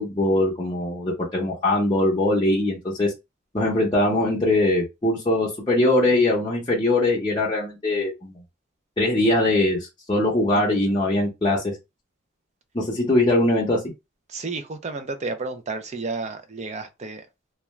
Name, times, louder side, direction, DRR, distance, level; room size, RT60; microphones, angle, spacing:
voice 1, 0.0-3.1 3.5-8.4 9.0-11.7 12.7-13.8, left 1 dB, 25° left, 0.6 m, -21 dB
voice 2, 14.3-17.2, right 3 dB, 35° right, 0.4 m, -31 dB
2.3 x 2.2 x 3.0 m
head